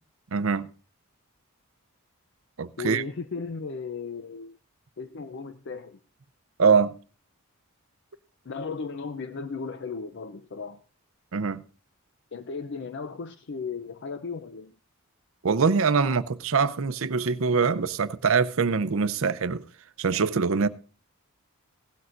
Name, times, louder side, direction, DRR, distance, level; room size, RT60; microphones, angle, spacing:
voice 1, 0.3-0.7 2.6-3.0 6.6-6.9 11.3-11.6 15.4-19.6 20.0-20.7, right 5 dB, 65° right, 0.6 m, -23 dB
voice 2, 2.8-4.6 5.0-6.0 8.5-10.8 12.3-14.7, left 4 dB, 55° left, 0.5 m, -36 dB
17.0 x 12.5 x 2.5 m
head